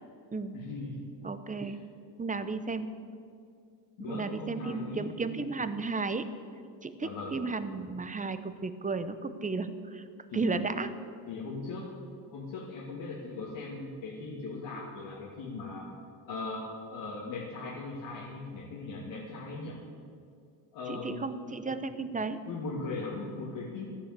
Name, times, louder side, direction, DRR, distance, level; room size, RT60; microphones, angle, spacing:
voice 1, 0.5-1.1 1.6-1.8 4.0-5.1 7.0-7.4 10.3-10.5 11.3-11.9 12.3-15.9 16.3-19.8 20.7-21.4 22.5-23.9, left 3 dB, 80° left, -5 dB, 2.6 m, -39 dB
voice 2, 1.2-1.8 2.2-2.9 4.0-6.3 6.8-10.0 10.3-10.9 20.9-22.4, right 4 dB, 15° right, 11 dB, 0.8 m, -34 dB
12.5 x 9.9 x 8.1 m, 2.3 s
cardioid pair, 110°, 46 cm